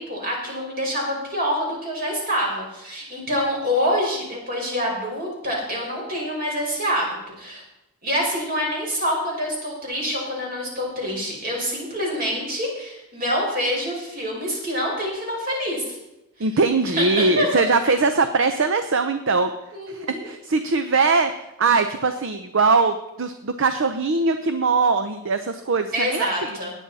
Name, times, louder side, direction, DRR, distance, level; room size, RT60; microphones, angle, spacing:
voice 1, 0.0-7.6 8.0-16.0 17.0-17.6 19.7-20.3 25.9-26.7, equal, 40° right, -2 dB, 5.0 m, -26 dB
voice 2, 16.4-19.5 19.9-26.6, right 4 dB, 60° right, 8 dB, 0.7 m, -21 dB
17.0 x 10.0 x 4.2 m, 0.91 s
head